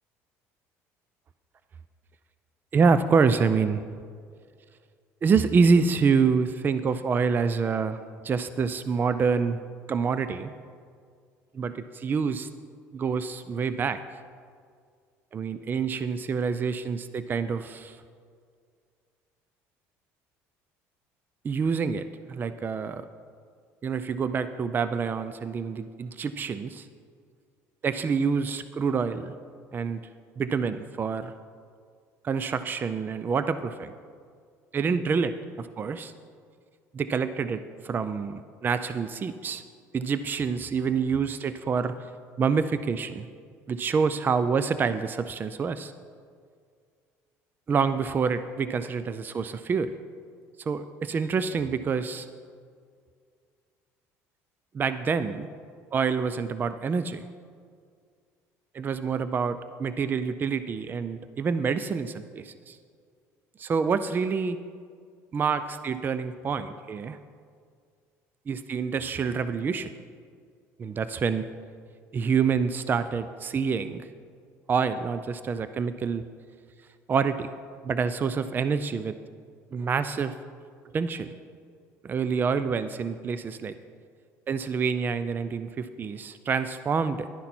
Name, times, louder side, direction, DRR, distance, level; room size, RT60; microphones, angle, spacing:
voice 1, 2.7-3.9 5.2-9.6 9.9-10.5 11.5-12.5 12.9-14.0 15.3-18.0 21.4-23.1 23.8-26.9 27.8-29.3 29.7-30.0 30.4-31.3 32.2-33.9 34.7-36.1 36.9-39.6 39.9-42.0 42.4-43.3 43.7-45.9 47.7-49.9 50.6-52.3 54.7-55.5 55.9-57.3 58.7-62.8 63.6-64.6 65.3-67.2 68.5-69.9 70.8-71.5 72.1-74.1 74.7-76.3 77.1-77.5 77.8-79.2 79.7-80.4 80.9-81.3 82.0-83.7 84.5-87.4, right 5 dB, 30° right, 12 dB, 0.4 m, -27 dB
11.5 x 10.0 x 4.4 m, 2.1 s
supercardioid pair, 100°, 6 cm